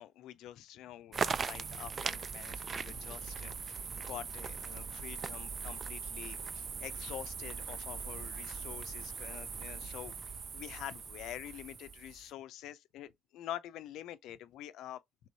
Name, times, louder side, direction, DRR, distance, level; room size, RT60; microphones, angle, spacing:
voice 1, 0.0-15.0, left 12 dB, 90° left, 0.4 m, -47 dB
sound 1, 1.1-12.3, right 5 dB, 45° right, 0.4 m, -40 dB
3.4 x 3.0 x 4.0 m
cardioid pair, 90°, 0 cm